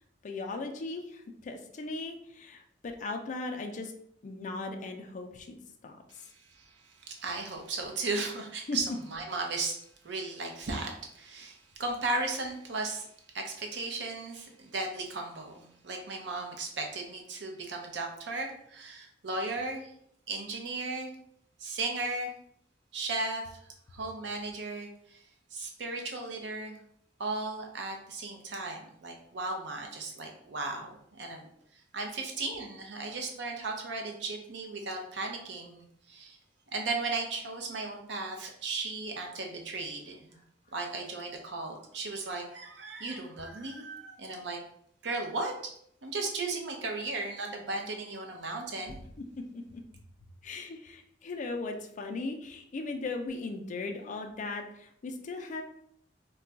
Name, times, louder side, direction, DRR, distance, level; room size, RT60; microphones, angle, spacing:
voice 1, 0.2-3.9 4.2-5.6 5.8-6.0 8.7-8.8 49.5-49.8 50.4-55.6, left 3 dB, 45° left, 4 dB, 0.4 m, -38 dB
voice 2, 6.1-8.9 9.1-9.8 10.0-13.1 13.3-19.9 20.3-21.1 21.6-22.3 22.9-23.4 23.9-25.2 25.5-26.8 27.2-31.5 31.9-36.4 36.7-40.4 40.7-44.6 45.0-45.5 46.0-49.0, right 3 dB, 70° right, 2 dB, 0.6 m, -36 dB
2.3 x 2.2 x 3.9 m, 0.70 s
head